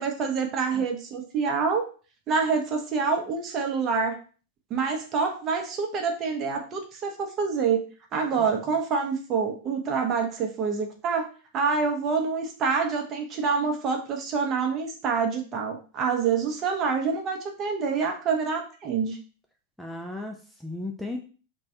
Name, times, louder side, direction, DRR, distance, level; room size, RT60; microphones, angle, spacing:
voice 1, 0.0-1.8 2.3-4.2 4.7-11.3 11.5-19.2, right 5 dB, 30° right, 3 dB, 0.7 m, -27 dB
voice 2, 19.8-21.2, left 2 dB, ahead, 2 dB, 0.3 m, -35 dB
3.0 x 2.2 x 2.8 m, 0.38 s
figure-of-eight pair, 90°, 0 cm